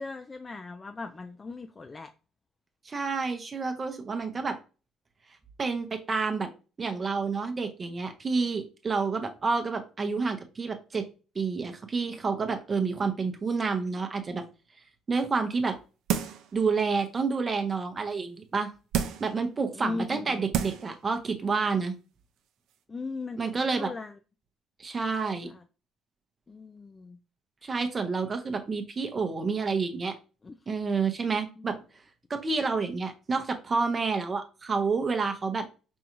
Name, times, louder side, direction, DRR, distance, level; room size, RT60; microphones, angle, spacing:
voice 1, 0.0-2.1 19.7-20.4 22.9-24.2 25.2-25.6 26.5-27.2 30.4-30.6 31.6-31.7, left 3 dB, 30° left, 0.3 m, -38 dB
voice 2, 2.8-4.6 5.6-6.5 6.8-11.0 11.3-14.4 15.1-15.8 16.5-18.7 19.2-21.9 23.4-23.9 24.8-25.5 27.6-30.1 30.7-31.8 32.3-35.6, right 4 dB, 35° right, 0.7 m, -29 dB
sound 1, 16.1-16.5 17.0-17.1 18.9-19.4 20.1-20.2 20.5-20.9 21.3-21.4, right 9 dB, 75° right, 0.5 m, -29 dB
5.3 x 2.3 x 3.0 m
cardioid pair, 90°, 0 cm